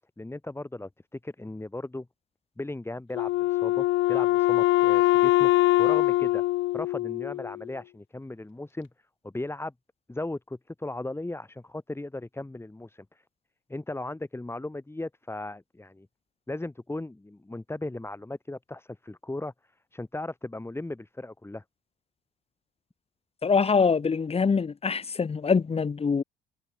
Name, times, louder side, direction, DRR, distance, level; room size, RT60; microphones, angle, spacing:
voice 1, 0.2-0.9 1.2-2.1 2.6-5.5 5.8-6.4 6.7-8.9 9.2-9.7 10.1-13.2 13.7-16.1 16.5-19.5 19.9-21.6, left 2 dB, 10° left, 7.6 m, -37 dB
Wind instrument woodwind instrument, 3.1-7.6, left 17 dB, 70° left, 1.4 m, -23 dB
voice 2, 23.4-26.2, left 5 dB, 30° left, 2.0 m, -24 dB
supercardioid pair, 75°, 21 cm